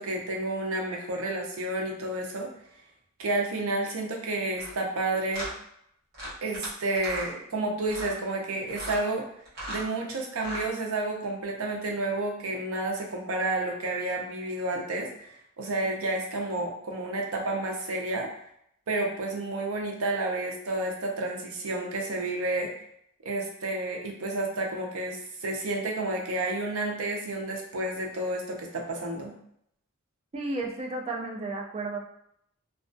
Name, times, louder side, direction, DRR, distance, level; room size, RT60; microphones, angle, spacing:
voice 1, 0.0-2.5 3.2-5.5 6.4-9.3 9.7-18.3 18.9-22.7 23.2-29.3, right 2 dB, 75° right, 1 dB, 0.5 m, -30 dB
sound 1, 4.5-4.7 5.3-5.5 6.1-6.7 6.9-7.3 7.8-8.2 8.7-9.0 9.4-9.9 10.3-10.7, right 1 dB, 50° right, 0.9 m, -37 dB
voice 2, 30.3-32.0, right 2 dB, 30° right, -1 dB, 0.4 m, -33 dB
2.2 x 2.2 x 2.5 m, 0.71 s
head